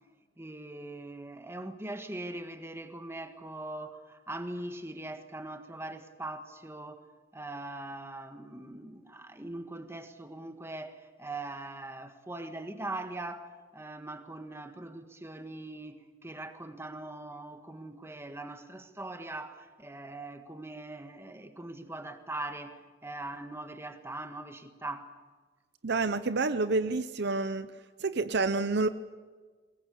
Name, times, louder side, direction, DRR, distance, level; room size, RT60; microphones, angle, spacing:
voice 1, 0.4-7.1 7.3-25.1, right 2 dB, 15° right, 1.6 m, -41 dB
voice 2, 25.8-27.7 28.0-28.9, right 3 dB, 60° right, 0.7 m, -28 dB
23.5 x 20.5 x 8.4 m
head